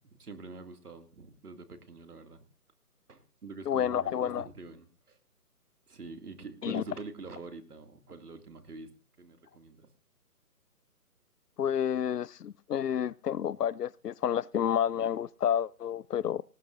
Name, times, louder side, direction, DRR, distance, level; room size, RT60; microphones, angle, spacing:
voice 1, 0.2-2.4 3.1-5.2 5.9-8.9 9.2-9.9, right 3 dB, 75° right, 2.3 m, -45 dB
voice 2, 3.7-4.4 6.6-6.8 11.6-16.4, left 9 dB, 80° left, 0.6 m, -30 dB
18.5 x 14.5 x 2.5 m
hypercardioid pair, 180°, 46 cm